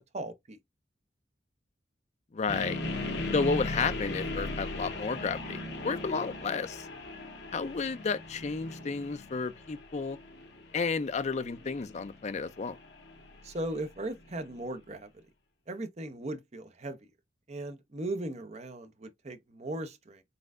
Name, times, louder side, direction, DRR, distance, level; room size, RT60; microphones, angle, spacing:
voice 1, 0.1-0.6 13.4-15.1 15.7-17.0 17.5-20.2, right 1 dB, 35° right, 0.7 m, -38 dB
voice 2, 2.3-2.8 3.3-6.9 7.5-10.2 10.7-12.8, left 4 dB, 35° left, 0.4 m, -32 dB
sound 1, 2.5-14.4, left 2 dB, 60° left, 1.0 m, -38 dB
4.1 x 3.7 x 2.4 m
head